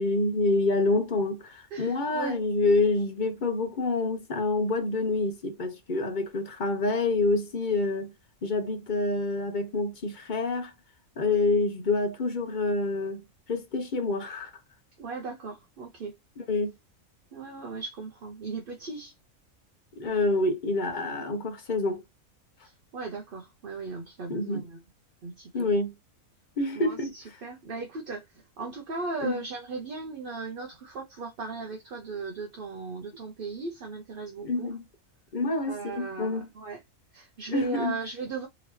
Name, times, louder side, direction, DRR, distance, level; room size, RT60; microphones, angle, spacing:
voice 1, 0.0-8.1 8.4-10.7 11.2-13.2 13.5-14.5 16.4-16.7 20.0-22.0 24.3-24.6 25.5-25.9 26.6-27.1 29.2-29.4 34.4-34.8 35.3-36.5 37.5-37.9, left 3 dB, 45° left, 0.7 m, -27 dB
voice 2, 1.7-2.4 15.0-16.2 17.3-19.1 22.6-24.8 25.2-25.7 26.7-34.7 35.7-36.8 37.1-38.5, right 4 dB, 50° right, 0.7 m, -37 dB
3.8 x 2.9 x 3.0 m
omnidirectional pair, 1.5 m